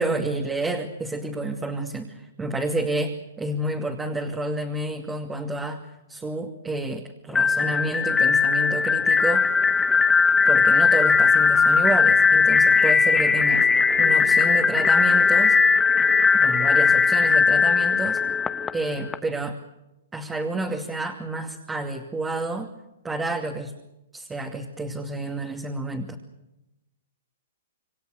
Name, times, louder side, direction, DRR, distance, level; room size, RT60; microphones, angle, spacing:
voice 1, 0.0-5.8 6.1-9.6 10.4-13.7 14.0-15.6 16.3-18.2 18.7-19.6 20.1-22.7 23.0-23.7 24.1-26.2, right 2 dB, 10° right, 2 dB, 2.5 m, -29 dB
sound 1, 7.3-19.1, left 5 dB, 10° left, 1.1 m, -19 dB
28.5 x 23.0 x 6.6 m, 0.92 s
hypercardioid pair, 135°, 0 cm